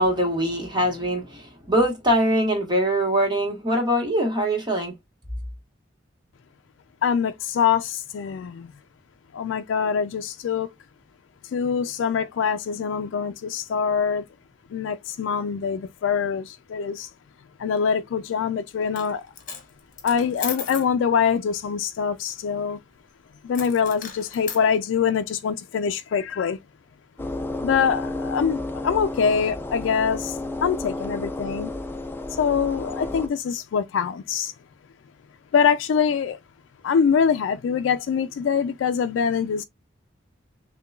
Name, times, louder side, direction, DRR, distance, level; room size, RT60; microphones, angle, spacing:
voice 1, 0.0-4.9, right 1 dB, 25° right, 1.2 m, -23 dB
voice 2, 7.0-8.7 9.3-10.7 11.5-14.2 14.7-17.1 17.6-19.2 20.0-22.8 23.4-26.6 27.6-31.7 32.4-34.5 35.5-36.4 36.8-39.6, left 6 dB, 90° left, 0.3 m, -24 dB
Coin (dropping), 18.8-19.1 19.4-20.9 23.5-24.6, left 7 dB, 45° left, 1.2 m, -35 dB
sound 1, 27.2-33.3, left 2 dB, 10° left, 0.4 m, -32 dB
6.6 x 2.2 x 2.3 m
head